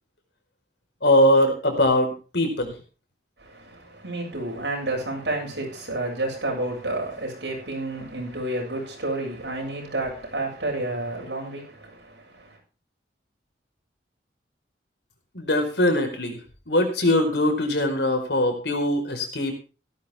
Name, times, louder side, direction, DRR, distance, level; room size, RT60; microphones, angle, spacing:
voice 1, 1.0-2.7 15.3-16.4 16.7-19.5, left 1 dB, 70° left, 4.8 m, -21 dB
voice 2, 3.4-12.6, right 2 dB, 75° right, 7.4 m, -30 dB
16.5 x 13.5 x 3.6 m
head